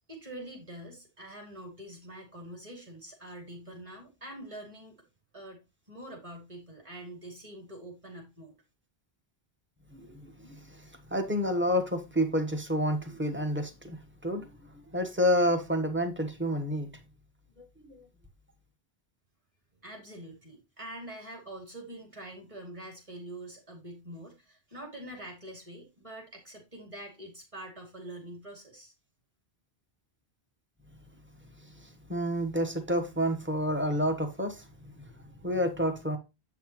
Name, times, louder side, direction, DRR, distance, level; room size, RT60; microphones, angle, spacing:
voice 1, 0.1-5.0 5.3-5.6 5.9-8.6 19.8-28.9, right 1 dB, 30° right, 2.7 m, -45 dB
voice 2, 9.9-16.9 17.6-18.0 31.6-36.2, equal, 10° right, 1.2 m, -30 dB
8.2 x 5.8 x 3.0 m
omnidirectional pair, 1.1 m